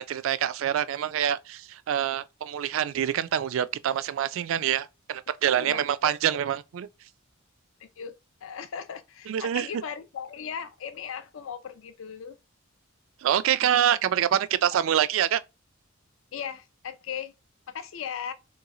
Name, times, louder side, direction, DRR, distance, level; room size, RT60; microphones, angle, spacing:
voice 1, 0.0-6.9 9.3-9.7 13.2-15.4, right 10 dB, 65° right, 0.3 m, -26 dB
voice 2, 5.6-6.2 7.8-8.1 8.4-12.4 13.7-14.0 16.3-17.3 17.7-18.3, left 7 dB, 65° left, 0.4 m, -37 dB
3.0 x 3.0 x 3.7 m
head